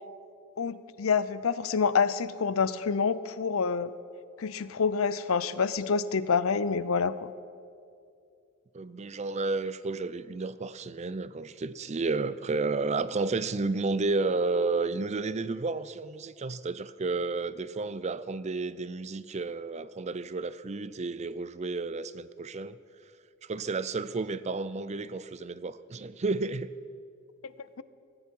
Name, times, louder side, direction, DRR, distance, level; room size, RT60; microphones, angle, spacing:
voice 1, 0.6-3.9 4.4-7.3 27.4-27.5, left 5 dB, 90° left, 16 dB, 0.6 m, -27 dB
voice 2, 8.7-22.8 23.4-26.7, right 3 dB, 35° right, 15 dB, 0.5 m, -31 dB
19.0 x 15.0 x 4.6 m, 2.4 s
head